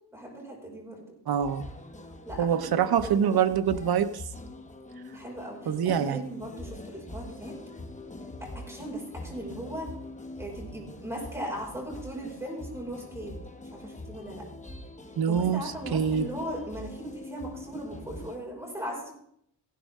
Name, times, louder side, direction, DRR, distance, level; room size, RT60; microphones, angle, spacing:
voice 1, 0.1-1.1 2.2-3.5 5.1-7.6 8.4-9.9 10.4-13.4 13.7-14.5 15.3-19.1, right 1 dB, 5° right, -3 dB, 5.5 m, -38 dB
voice 2, 1.3-1.6 2.4-4.2 5.7-6.2 15.2-15.6 15.9-16.3, right 8 dB, 55° right, 10 dB, 0.9 m, -25 dB
sound 1, 1.4-18.4, left 2 dB, 15° left, 1.1 m, -43 dB
16.0 x 12.0 x 3.7 m, 0.70 s
wide cardioid pair, 115°, 46 cm